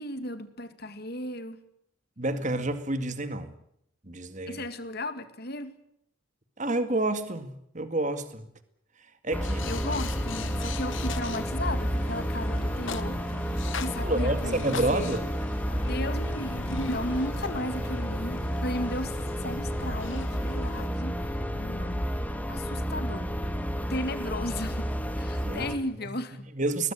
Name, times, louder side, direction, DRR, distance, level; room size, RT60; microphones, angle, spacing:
voice 1, 0.0-1.6 4.5-5.7 9.7-15.1 15.9-19.1 19.4-21.2 21.6-22.1 22.5-23.3 23.9-24.8 25.2-26.5, left 1 dB, 50° left, 2.1 m, -35 dB
voice 2, 2.2-3.5 4.0-4.7 6.6-8.5 9.2-9.7 14.0-15.2 25.3-25.7 26.0-26.1 26.5-26.9, right 2 dB, 35° right, 2.1 m, -29 dB
sound 1, 9.3-25.8, equal, 5° left, 2.3 m, -31 dB
sound 2, 9.4-20.9, left 4 dB, 65° left, 1.6 m, -41 dB
22.0 x 21.0 x 8.7 m
head